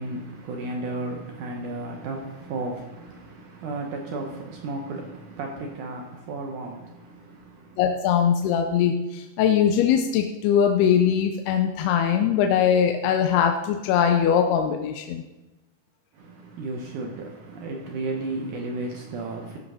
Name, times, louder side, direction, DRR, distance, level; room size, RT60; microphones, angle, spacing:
voice 1, 0.0-7.8 16.1-19.6, right 2 dB, 70° right, 1.9 m, -34 dB
voice 2, 7.8-15.2, left 8 dB, 80° left, 2.5 m, -21 dB
14.5 x 5.2 x 5.6 m
omnidirectional pair, 4.9 m